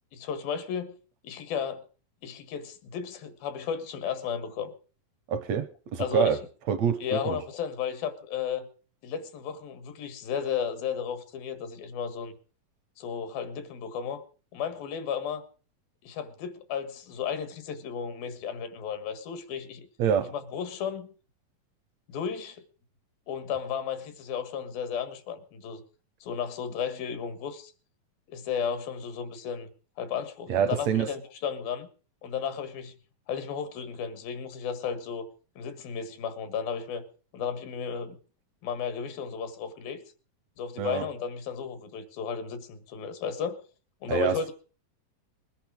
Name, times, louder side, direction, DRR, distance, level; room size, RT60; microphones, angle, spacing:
voice 1, 0.1-1.0 1.2-1.8 2.2-4.7 6.0-6.4 7.0-8.7 9.0-12.3 13.0-14.2 14.5-15.4 16.0-19.9 20.3-21.1 22.1-22.6 23.3-25.8 26.2-27.7 28.3-29.7 30.0-31.9 32.2-32.9 33.3-35.3 35.6-37.0 37.3-38.2 38.6-40.0 40.6-43.6 44.0-44.5, left 7 dB, 90° left, 3.4 m, -34 dB
voice 2, 5.3-6.4 6.7-7.4 20.0-20.3 30.5-31.1 40.8-41.1 44.1-44.5, right 7 dB, 75° right, 1.7 m, -26 dB
21.0 x 11.0 x 4.9 m
omnidirectional pair, 4.0 m